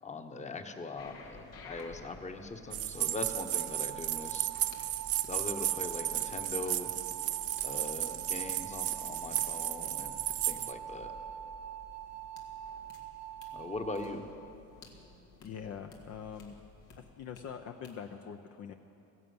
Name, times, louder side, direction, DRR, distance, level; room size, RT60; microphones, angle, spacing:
voice 1, 0.0-4.5 5.2-6.9 7.6-11.1 13.5-14.3, left 3 dB, 20° left, 6 dB, 1.1 m, -41 dB
sound 1, 1.0-17.4 17.8-17.9, left 3 dB, 85° left, 2.1 m, -54 dB
sound 2, 2.7-10.7, right 14 dB, 50° right, 0.4 m, -34 dB
sound 3, 3.0-14.2, right 10 dB, 85° right, 1.9 m, -45 dB
voice 2, 15.4-16.6 17.0-18.7, left 7 dB, 50° left, 5 dB, 0.7 m, -44 dB
16.0 x 11.0 x 7.8 m, 2.8 s
cardioid pair, 110°, 32 cm